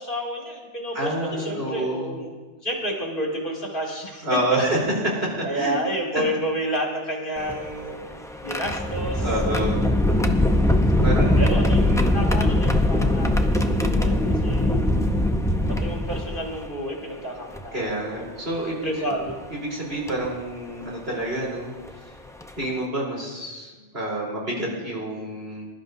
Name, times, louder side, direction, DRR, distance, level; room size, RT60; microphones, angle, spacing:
voice 1, 0.0-2.3 2.6-4.3 5.4-8.1 8.4-9.3 11.4-11.8 12.1-14.8 15.8-17.9 18.8-19.3, equal, 45° left, 0 dB, 2.1 m, -30 dB
voice 2, 0.9-2.2 4.2-5.7 6.1-6.2 9.2-9.9 11.0-12.2 17.7-19.1 19.5-21.7 22.6-25.7, right 1 dB, 55° right, -4 dB, 4.0 m, -28 dB
sound 1, 7.4-16.7 17.5-17.6 19.1-19.3 20.1-20.3 21.9-22.0 22.4-22.6, left 1 dB, 5° left, 0.4 m, -21 dB
21.0 x 11.5 x 2.7 m, 1.3 s
omnidirectional pair, 1.2 m